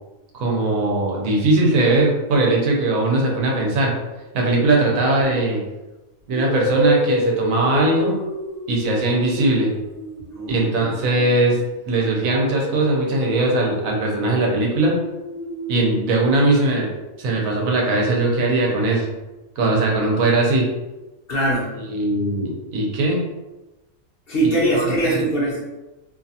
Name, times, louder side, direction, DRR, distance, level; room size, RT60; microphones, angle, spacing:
voice 1, 0.3-3.9 4.3-5.6 6.3-8.2 8.7-9.7 10.5-11.6 11.9-15.0 15.7-16.9 17.2-19.1 19.6-20.7 21.9-23.2 24.4-25.2, right 2 dB, 85° right, -1 dB, 1.1 m, -20 dB
sound 1, 5.2-5.5 6.3-11.6 12.0-16.0, equal, 60° right, 1.3 m, -28 dB
voice 2, 21.3-21.7 24.3-25.7, right 1 dB, 55° left, -5 dB, 0.7 m, -21 dB
2.7 x 2.4 x 2.6 m, 1.1 s
omnidirectional pair, 1.4 m